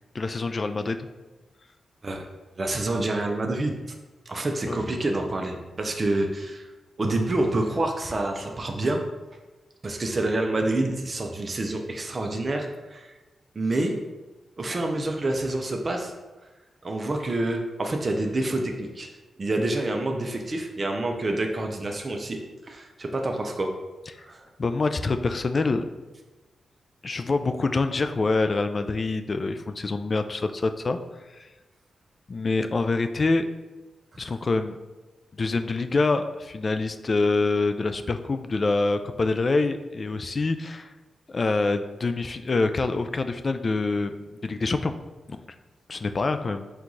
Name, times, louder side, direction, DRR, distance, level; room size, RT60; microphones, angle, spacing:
voice 1, 0.1-1.1 4.7-4.8 24.6-25.8 27.0-31.0 31.4-31.5 32.3-33.5 34.2-34.8 35.4-40.9 41.3-44.9 45.3-45.4 45.9-46.6, left 3 dB, 45° left, 9 dB, 0.3 m, -25 dB
voice 2, 2.6-4.0 4.3-6.7 7.0-9.0 9.8-12.7 12.9-13.1 13.6-14.0 14.6-16.1 16.8-19.1 19.4-22.4 22.7-23.7 24.2-24.4, right 2 dB, 40° right, 3 dB, 0.5 m, -27 dB
4.5 x 2.4 x 3.9 m, 1.2 s
cardioid pair, 55°, 0 cm